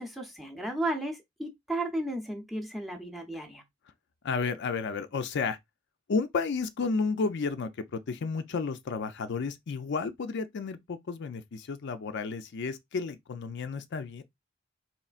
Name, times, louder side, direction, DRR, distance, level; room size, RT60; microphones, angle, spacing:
voice 1, 0.0-3.6, right 1 dB, ahead, 0.7 m, -34 dB
voice 2, 4.2-5.6 6.1-14.2, left 4 dB, 60° left, 0.4 m, -32 dB
4.2 x 3.1 x 2.4 m
head